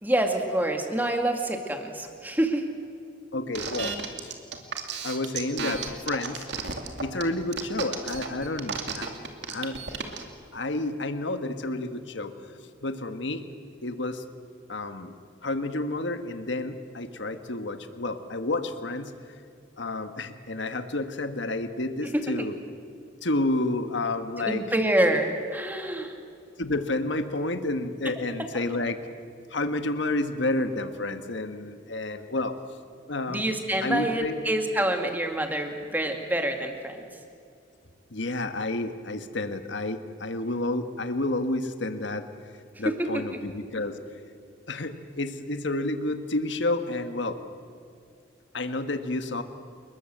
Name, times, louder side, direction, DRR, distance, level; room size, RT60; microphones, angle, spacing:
voice 1, 0.0-2.7 22.1-22.2 24.4-26.1 33.3-37.1 42.8-43.1, right 1 dB, 10° right, 4 dB, 2.4 m, -26 dB
voice 2, 3.3-4.3 5.0-6.5 7.0-9.1 9.5-9.8 10.5-13.4 13.8-14.2 14.7-15.1 15.4-19.1 19.8-22.6 23.2-24.7 26.6-29.0 29.5-32.6 33.1-33.4 33.8-34.4 38.1-42.2 42.8-44.0 44.7-47.4 48.5-49.4, left 2 dB, 65° left, 8 dB, 1.5 m, -30 dB
sound 1, 3.6-10.2, right 5 dB, 60° right, 2.6 m, -33 dB
29.0 x 21.0 x 7.9 m, 2.4 s
head